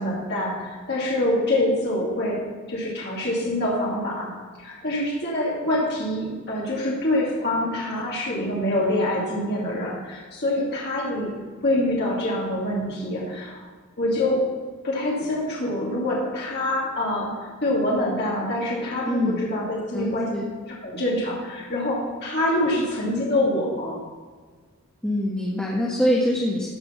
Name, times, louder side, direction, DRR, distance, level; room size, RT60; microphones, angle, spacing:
voice 1, 0.0-2.4 2.7-4.3 4.6-11.3 11.6-13.6 14.0-14.5 14.8-20.3 20.8-24.0, left 1 dB, 50° left, -5 dB, 2.6 m, -25 dB
voice 2, 19.0-19.4 19.9-20.5 25.0-26.7, equal, 5° left, -6 dB, 1.4 m, -24 dB
15.0 x 5.2 x 5.8 m, 1.5 s
head